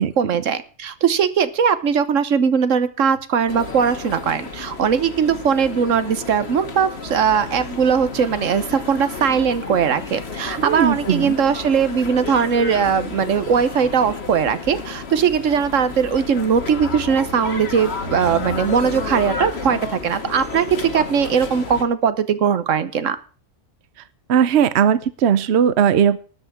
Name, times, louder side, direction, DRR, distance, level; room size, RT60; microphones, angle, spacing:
voice 1, 0.0-23.2, right 7 dB, 80° right, 13 dB, 1.4 m, -20 dB
sound 1, 3.5-21.8, left 4 dB, 55° left, 1.8 m, -32 dB
voice 2, 10.6-11.3 24.3-26.2, right 8 dB, 65° right, 15 dB, 0.9 m, -17 dB
12.5 x 5.8 x 9.3 m, 0.39 s
omnidirectional pair, 1.3 m